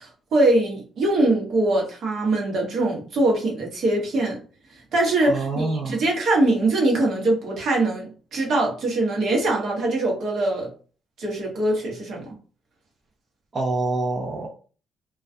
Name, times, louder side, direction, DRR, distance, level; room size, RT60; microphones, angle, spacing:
voice 1, 0.0-4.4 4.9-10.7 11.2-12.3, right 2 dB, 65° right, 0.9 m, -22 dB
voice 2, 5.3-6.0 13.5-14.5, right 3 dB, 40° right, 0.6 m, -26 dB
2.3 x 2.2 x 2.6 m
cardioid pair, 90°, 0 cm